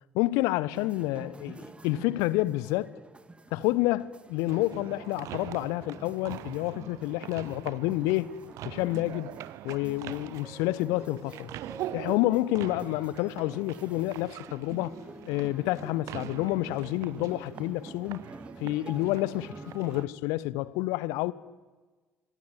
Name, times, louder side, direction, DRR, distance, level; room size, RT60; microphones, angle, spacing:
voice 1, 0.1-2.9 3.5-8.3 8.6-9.3 9.6-11.5 11.9-15.0 15.3-18.3 18.6-21.3, left 17 dB, 65° left, 1.1 m, -29 dB
sound 1, 0.7-20.0, right 2 dB, 15° right, 2.2 m, -47 dB
sound 2, 4.5-20.0, right 14 dB, 55° right, 0.8 m, -43 dB
27.0 x 21.5 x 9.7 m
figure-of-eight pair, 55°, 6 cm